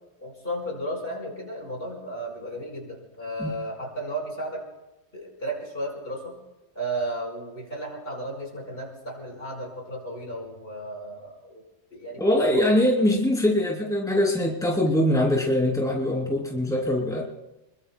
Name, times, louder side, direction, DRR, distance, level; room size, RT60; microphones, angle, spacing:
voice 1, 0.2-4.6 5.1-6.4 6.8-11.6 11.9-12.2 12.5-12.7, right 1 dB, 60° left, -1 dB, 5.2 m, -34 dB
voice 2, 12.2-17.2, left 1 dB, 5° left, -1 dB, 2.8 m, -22 dB
27.5 x 22.5 x 2.2 m, 1.0 s
omnidirectional pair, 1.1 m